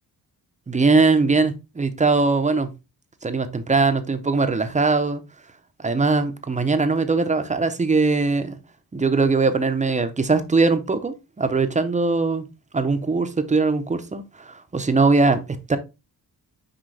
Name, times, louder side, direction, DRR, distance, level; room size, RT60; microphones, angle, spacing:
voice 1, 0.7-2.7 3.2-5.2 5.8-8.6 8.9-12.4 12.7-15.8, right 3 dB, 20° right, 0.5 m, -21 dB
6.2 x 4.8 x 3.3 m
wide cardioid pair, 175°, 39 cm